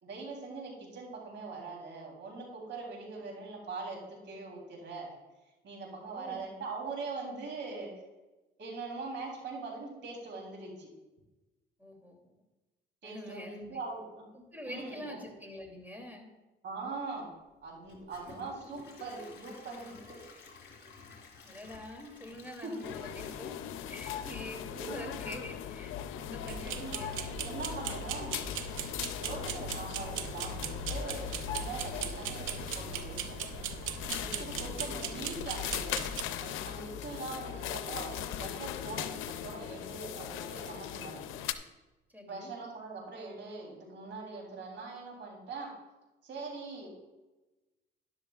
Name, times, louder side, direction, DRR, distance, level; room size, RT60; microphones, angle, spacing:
voice 1, 0.0-5.1 5.6-7.9 8.6-10.9 13.0-14.3 14.7-15.2 16.6-17.3 17.6-20.2 22.6-22.8 24.8-25.0 26.6-27.0 27.4-28.5 29.2-33.4 34.2-36.1 36.4-41.2 42.3-45.7 46.2-46.9, right 3 dB, 65° right, 0 dB, 3.4 m, -42 dB
voice 2, 11.8-12.2 13.0-13.8 14.3-16.3 21.4-27.4 34.3-34.7 42.1-42.5, left 1 dB, 10° right, 1 dB, 2.8 m, -46 dB
Gurgling / Toilet flush / Trickle dribble, 17.8-24.9 25.3-25.4 25.9-26.0, left 4 dB, 55° left, 2.9 m, -53 dB
sound 1, 22.8-41.5, left 10 dB, 90° left, 0.6 m, -39 dB
sound 2, 26.5-36.2, right 9 dB, 85° right, 0.7 m, -39 dB
12.5 x 11.0 x 2.4 m, 1.1 s
cardioid pair, 90°, 20 cm